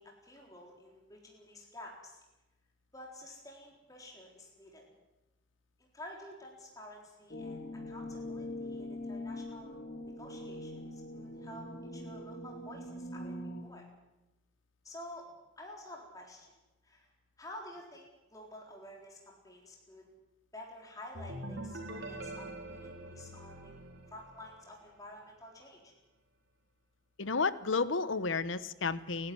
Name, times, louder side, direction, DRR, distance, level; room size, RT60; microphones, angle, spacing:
voice 1, 0.0-2.2 2.9-4.8 5.8-9.8 10.0-13.9 14.8-15.2 15.6-16.6 16.8-17.1 17.4-20.0 20.5-23.7 24.1-25.9, left 1 dB, 20° left, -1 dB, 4.0 m, -50 dB
sound 1, 7.3-13.6, left 1 dB, 55° left, 2.9 m, -42 dB
sound 2, 21.1-24.9, right 1 dB, 85° right, 3.8 m, -44 dB
voice 2, 27.2-29.3, left 4 dB, 80° left, 15 dB, 1.0 m, -32 dB
30.0 x 12.0 x 9.5 m, 1.0 s
head